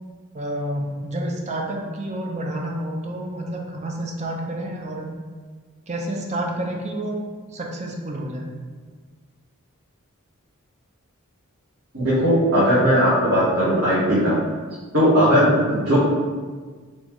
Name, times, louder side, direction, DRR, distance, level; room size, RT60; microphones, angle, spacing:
voice 1, 0.3-5.1 5.9-7.2 7.5-8.5, right 1 dB, 30° right, 0 dB, 0.5 m, -29 dB
voice 2, 11.9-14.3 14.9-16.0, equal, 65° right, -11 dB, 1.2 m, -18 dB
3.6 x 3.0 x 3.0 m, 1.5 s
head